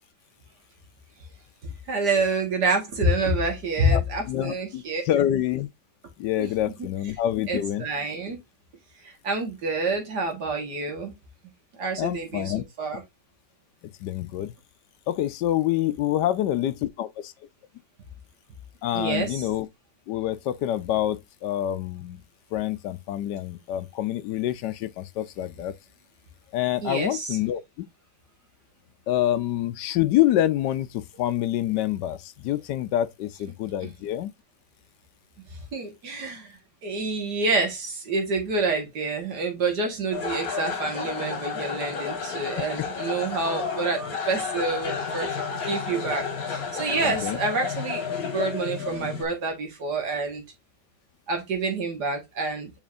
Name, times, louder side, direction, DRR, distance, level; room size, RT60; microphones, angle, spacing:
voice 1, 1.6-5.0 6.4-6.5 7.5-8.4 9.0-11.1 11.8-13.0 18.9-19.5 26.8-27.3 35.5-48.0 48.3-50.4 51.3-52.7, right 3 dB, 65° right, 2.2 m, -28 dB
voice 2, 3.9-5.7 6.2-7.9 12.0-12.6 14.0-14.5 15.1-17.3 18.8-19.7 20.1-22.2 22.5-25.7 26.5-27.6 29.1-34.3 42.8-42.9 47.0-47.4, left 12 dB, 75° left, 1.1 m, -26 dB
sound 1, 40.1-49.2, left 6 dB, 55° left, 2.0 m, -31 dB
7.3 x 5.1 x 2.6 m
omnidirectional pair, 2.0 m